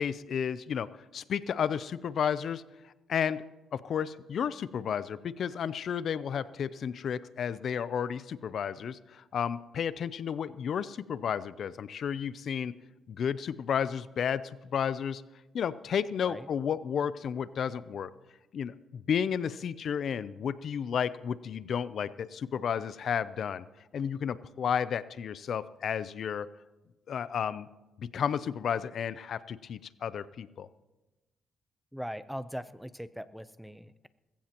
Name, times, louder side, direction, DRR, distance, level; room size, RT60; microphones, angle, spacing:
voice 1, 0.0-2.6 3.1-3.4 3.7-12.7 13.1-15.2 15.5-18.1 18.5-23.6 23.9-26.5 27.1-27.7 28.0-30.7, left 8 dB, 60° left, 16 dB, 0.5 m, -32 dB
voice 2, 31.9-34.1, equal, ahead, 14 dB, 0.6 m, -40 dB
20.5 x 16.0 x 3.0 m, 1.1 s
cardioid pair, 90°, 0 cm